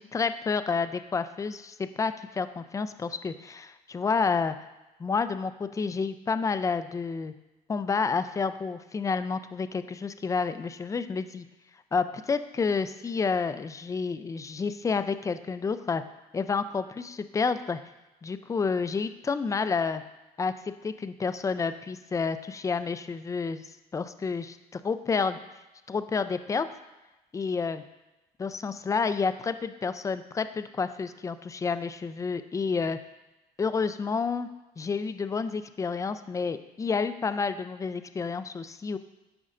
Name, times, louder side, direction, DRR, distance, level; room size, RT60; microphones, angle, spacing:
voice 1, 0.0-4.5 5.0-7.3 7.7-11.4 11.9-16.0 16.3-17.8 18.2-20.0 20.4-23.7 23.9-25.4 25.9-26.7 27.3-27.8 28.4-33.0 33.6-34.5 34.8-39.0, left 5 dB, 20° left, 11 dB, 0.4 m, -29 dB
12.0 x 5.2 x 2.5 m, 1.0 s
cardioid pair, 110°, 17 cm